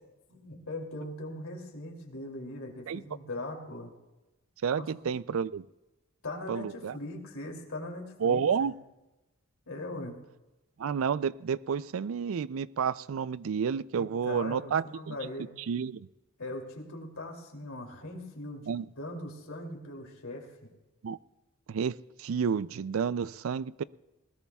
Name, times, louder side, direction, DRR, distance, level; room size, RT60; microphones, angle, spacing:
voice 1, 0.3-3.9 4.8-4.9 6.2-8.7 9.7-10.2 14.0-15.5 16.4-18.7 19.0-20.5, left 1 dB, 85° left, 0 dB, 2.8 m, -40 dB
voice 2, 4.6-5.6 6.5-6.9 8.2-8.7 10.8-15.2 15.7-16.1 18.7-18.9 21.0-21.2 21.7-21.9 22.2-23.8, right 6 dB, 70° right, 18 dB, 0.4 m, -30 dB
20.5 x 20.0 x 2.3 m, 1.0 s
head